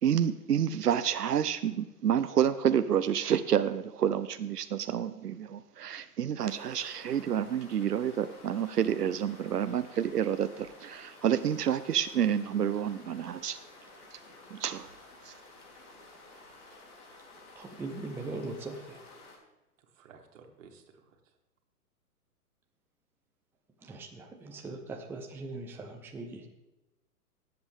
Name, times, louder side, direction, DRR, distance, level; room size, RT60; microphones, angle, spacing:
voice 1, 0.0-13.6 14.1-14.2 14.5-14.9 15.2-15.3, right 9 dB, 90° right, 11 dB, 0.7 m, -29 dB
sound 1, 6.4-19.4, left 2 dB, 50° left, 3.4 m, -53 dB
voice 2, 17.5-19.1 23.8-26.5, right 2 dB, 5° right, 2 dB, 0.7 m, -40 dB
voice 3, 19.8-21.4 25.7-25.8, right 5 dB, 55° right, 4 dB, 2.1 m, -56 dB
17.5 x 7.8 x 3.5 m, 1.0 s
hypercardioid pair, 120°, 46 cm